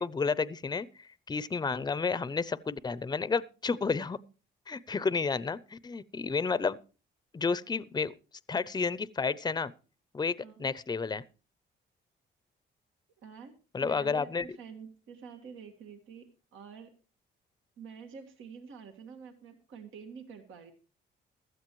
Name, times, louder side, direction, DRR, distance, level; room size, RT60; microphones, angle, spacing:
voice 1, 0.0-4.2 4.7-6.8 7.3-8.1 8.5-9.7 10.1-11.2 13.7-14.4, left 4 dB, 20° left, 0.6 m, -31 dB
voice 2, 13.2-13.5 13.8-16.3 16.5-16.9 17.8-20.7, right 6 dB, 80° right, 1.8 m, -47 dB
16.0 x 12.5 x 3.1 m
cardioid pair, 90°, 20 cm